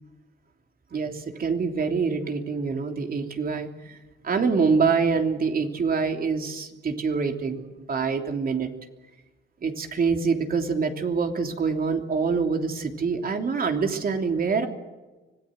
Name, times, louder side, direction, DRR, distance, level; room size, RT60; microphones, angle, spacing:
voice 1, 0.9-4.0 4.2-7.6 7.9-8.7 9.6-14.7, right 5 dB, 45° right, 4 dB, 3.2 m, -25 dB
25.5 x 17.5 x 7.8 m, 1.2 s
cardioid pair, 90°, 20 cm